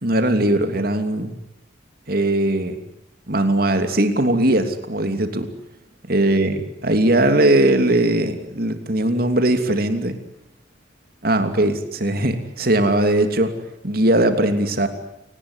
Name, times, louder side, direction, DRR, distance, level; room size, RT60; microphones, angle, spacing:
voice 1, 0.0-1.3 2.1-2.8 3.3-5.5 6.1-10.2 11.2-13.5 13.8-14.9, right 1 dB, 50° right, 8 dB, 3.0 m, -19 dB
29.0 x 19.0 x 9.8 m, 0.83 s
head